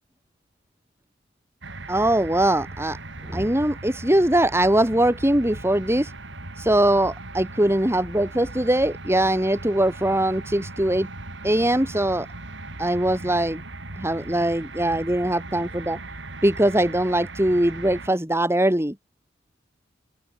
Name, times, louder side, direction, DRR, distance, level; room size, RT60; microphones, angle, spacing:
sound 1, 1.6-18.1, right 2 dB, 65° right, 5.5 m, -38 dB
voice 1, 1.9-3.0 3.2-6.1 6.6-11.1 11.4-12.3 12.8-13.6 14.0-16.0 16.4-19.0, right 1 dB, 15° right, 3.5 m, -21 dB
open air
head